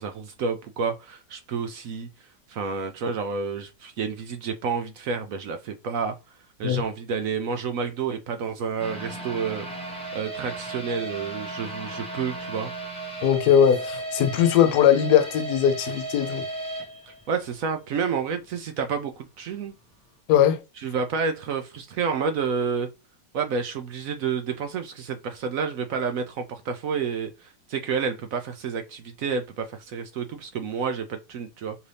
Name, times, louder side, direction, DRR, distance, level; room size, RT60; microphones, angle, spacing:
voice 1, 0.0-2.1 2.5-6.2 6.6-9.7 10.1-12.7 17.1-19.7 20.8-22.9 23.3-31.8, right 5 dB, 65° right, 0.9 m, -29 dB
sound 1, 8.8-17.8 18.1-18.2 18.7-18.8, right 2 dB, 5° left, 1.0 m, -35 dB
voice 2, 13.2-16.4 20.3-20.6, left 9 dB, 70° left, 1.2 m, -20 dB
5.3 x 2.6 x 3.3 m
omnidirectional pair, 1.9 m